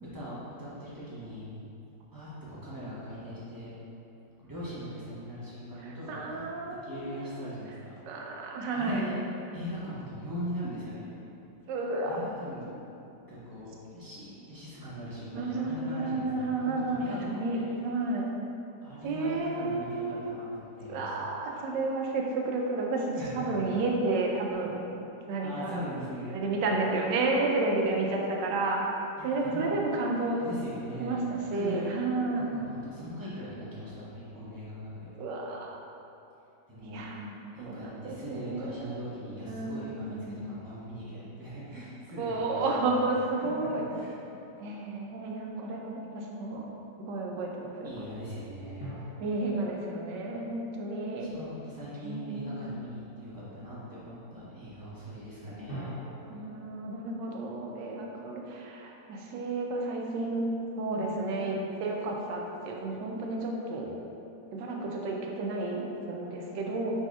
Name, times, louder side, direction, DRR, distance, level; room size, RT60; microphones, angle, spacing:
voice 1, 0.0-1.5 2.1-3.7 4.4-6.4 6.8-8.3 8.7-9.2 9.5-11.0 12.0-12.6 13.3-17.3 17.5-17.7 18.8-21.1 23.2-23.6 25.4-26.4 29.2-29.8 30.4-32.0 32.3-34.9 36.7-37.0 37.5-40.2 40.4-43.1 43.4-44.2 47.8-49.1 51.2-55.9, equal, 30° right, -10 dB, 0.3 m, -40 dB
voice 2, 5.8-7.3 8.1-9.0 11.7-12.2 15.3-18.3 19.0-20.2 20.9-24.8 25.3-25.9 26.3-28.8 29.2-30.4 31.0-32.5 35.2-35.8 36.9-37.3 37.6-39.0 39.5-40.4 42.2-43.8 44.6-46.6 47.0-47.9 49.2-51.3 52.0-52.6 56.3-60.4 60.8-63.9 64.5-66.9, right 2 dB, 85° right, -1 dB, 1.3 m, -31 dB
sound 1, 48.8-51.6 55.7-58.9, equal, 40° left, 0.9 m, -46 dB
5.0 x 4.1 x 2.3 m, 2.8 s
omnidirectional pair, 1.8 m